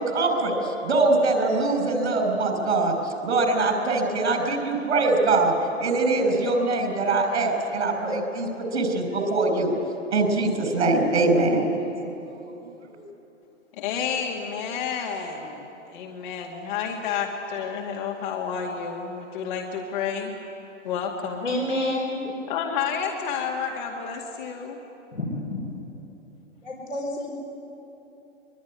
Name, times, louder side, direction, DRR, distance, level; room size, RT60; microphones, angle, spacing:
voice 1, 0.0-9.7 10.1-11.7 12.7-13.0, right 2 dB, 60° right, 5 dB, 5.6 m, -23 dB
voice 2, 13.8-20.3 20.8-21.5 22.5-24.8, left 7 dB, 40° left, 1 dB, 2.3 m, -30 dB
voice 3, 21.4-22.3 25.1-25.6 26.6-27.4, left 1 dB, 80° left, -1 dB, 5.1 m, -29 dB
24.0 x 23.0 x 9.7 m, 3.0 s
figure-of-eight pair, 110°, 38 cm